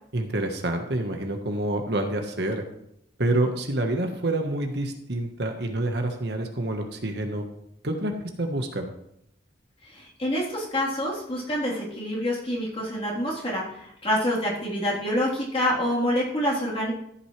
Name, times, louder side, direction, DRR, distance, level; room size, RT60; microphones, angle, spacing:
voice 1, 0.1-2.6 3.2-7.4 7.8-8.9, right 1 dB, 60° right, 4 dB, 1.4 m, -27 dB
voice 2, 9.9-16.9, equal, 30° left, -5 dB, 3.6 m, -27 dB
14.0 x 9.0 x 3.3 m, 0.76 s
head